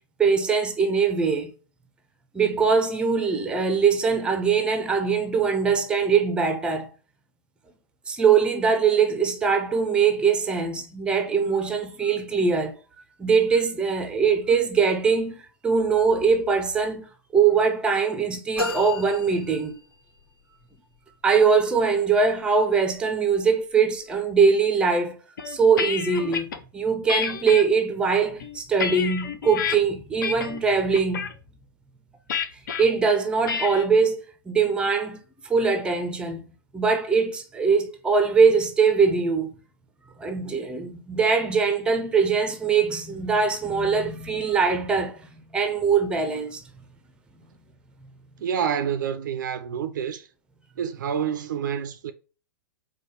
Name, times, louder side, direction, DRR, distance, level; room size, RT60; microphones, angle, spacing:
voice 1, 0.2-1.5 2.3-6.9 8.1-12.8 13.2-19.8 21.2-25.2 25.5-31.3 32.8-34.2 34.5-35.2 35.4-36.4 36.7-39.5 40.2-45.2 45.5-46.6, right 5 dB, 10° right, 0.6 m, -22 dB
sound 1, 18.6-20.2, left 2 dB, 75° left, 1.6 m, -32 dB
sound 2, 25.4-26.6 27.1-27.6 28.2-29.8 30.2-30.6 30.9-31.3 32.3-32.8 33.5-33.8, left 6 dB, 55° left, 0.7 m, -29 dB
voice 2, 48.4-50.3 50.8-52.1, right 8 dB, 55° right, 0.4 m, -28 dB
4.7 x 2.3 x 3.9 m
figure-of-eight pair, 110°, 12 cm